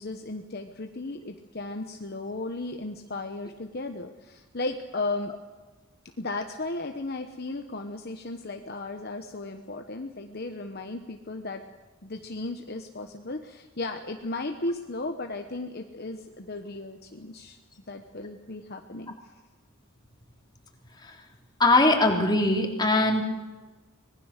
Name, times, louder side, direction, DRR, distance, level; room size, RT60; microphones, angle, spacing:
voice 1, 0.0-5.3 6.2-11.6 12.0-17.6 17.9-19.1, left 2 dB, 45° left, 5 dB, 1.1 m, -35 dB
voice 2, 21.6-23.2, left 2 dB, 20° left, 1 dB, 3.2 m, -21 dB
25.0 x 19.5 x 6.6 m, 1.3 s
head